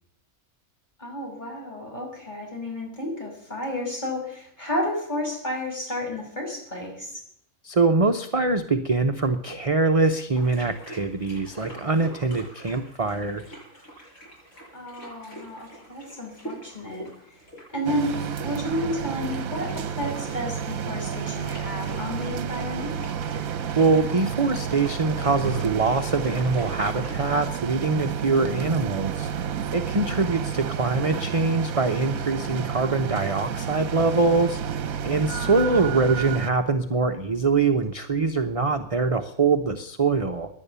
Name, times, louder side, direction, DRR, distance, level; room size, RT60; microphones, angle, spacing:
voice 1, 1.0-7.2 14.7-17.4 17.7-23.1 30.0-30.5 35.3-36.0, left 1 dB, 30° left, 0 dB, 5.9 m, -32 dB
voice 2, 7.6-13.4 23.7-29.3 29.7-34.6 35.0-40.5, right 3 dB, 30° right, 5 dB, 0.8 m, -23 dB
sound 1, 10.3-27.4, right 1 dB, 55° left, 8.6 m, -45 dB
sound 2, 17.8-36.5, right 8 dB, 70° right, 1.3 m, -31 dB
17.5 x 10.5 x 6.9 m, 0.71 s
omnidirectional pair, 1.5 m